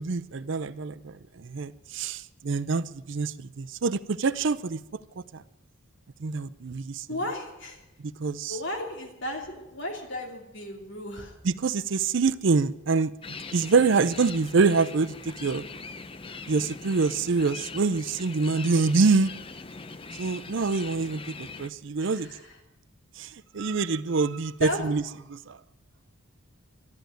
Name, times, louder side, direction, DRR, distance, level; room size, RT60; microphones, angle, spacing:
voice 1, 0.0-4.8 5.2-5.4 6.2-7.1 8.2-8.6 11.4-13.1 13.5-15.6 16.5-19.3 20.2-22.3 23.2-25.0 25.3-25.6, right 4 dB, 60° right, 16 dB, 0.5 m, -26 dB
voice 2, 7.1-7.8 8.5-11.4 22.0-22.6 24.6-24.8, left 1 dB, 55° left, 2 dB, 2.7 m, -34 dB
sound 1, 13.2-21.7, left 4 dB, 25° left, 0.5 m, -41 dB
12.0 x 11.5 x 9.1 m, 0.94 s
head